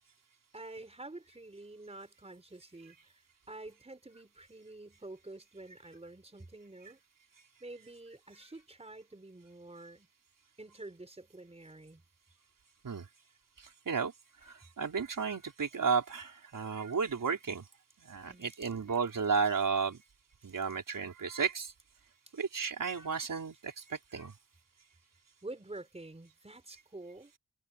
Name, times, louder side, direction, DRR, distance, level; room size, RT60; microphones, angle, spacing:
voice 1, 0.5-3.2 3.5-7.0 7.6-10.1 10.6-12.0 18.3-18.7 25.4-27.3, right 2 dB, 15° right, 4.6 m, -48 dB
voice 2, 13.6-14.1 14.4-17.6 18.0-20.0 20.4-21.7 22.3-24.3, right 5 dB, 65° right, 4.7 m, -33 dB
wide cardioid pair, 145°, 35 cm